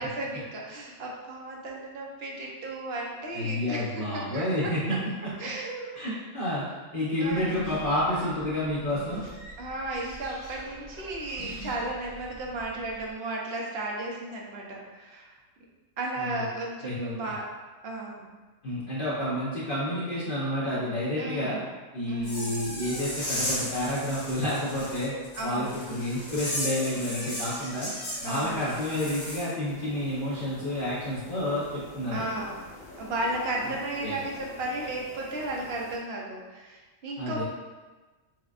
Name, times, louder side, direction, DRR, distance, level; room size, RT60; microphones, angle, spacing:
voice 1, 0.0-4.7 5.4-5.9 7.2-7.6 9.6-15.3 16.0-17.4 17.8-18.4 21.2-21.6 22.1-22.7 25.4-25.8 28.2-28.8 32.1-32.6 33.0-37.4, right 2 dB, 55° right, -2 dB, 0.8 m, -34 dB
voice 2, 3.3-5.0 5.9-6.7 6.9-9.2 16.2-16.4 16.8-17.3 18.6-21.6 21.9-25.1 25.4-27.9 28.2-32.2 34.0-34.2 37.2-37.4, left 1 dB, 45° left, -9 dB, 0.9 m, -30 dB
sound 1, 7.2-13.1, right 1 dB, 70° right, 1.6 m, -44 dB
sound 2, 22.2-29.5, left 1 dB, 60° left, 1.9 m, -35 dB
sound 3, 29.6-36.0, left 2 dB, 80° left, 1.4 m, -46 dB
6.3 x 2.3 x 2.4 m, 1.3 s
omnidirectional pair, 1.5 m